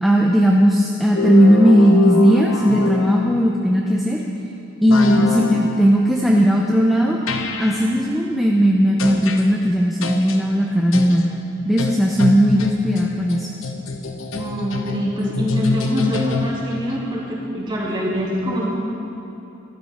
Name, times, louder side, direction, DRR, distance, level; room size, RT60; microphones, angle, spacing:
voice 1, 0.0-4.2 4.8-7.2 7.6-11.4 11.6-13.5, equal, ahead, -2 dB, 0.6 m, -16 dB
sound 1, 1.1-3.5 4.9-5.8 7.3-7.9 9.0-9.4 10.0-10.4 10.9-11.2 11.8-16.8, left 3 dB, 80° left, 1.0 m, -25 dB
voice 2, 14.3-18.7, equal, 25° right, -5 dB, 2.5 m, -24 dB
14.5 x 12.0 x 4.3 m, 3.0 s
head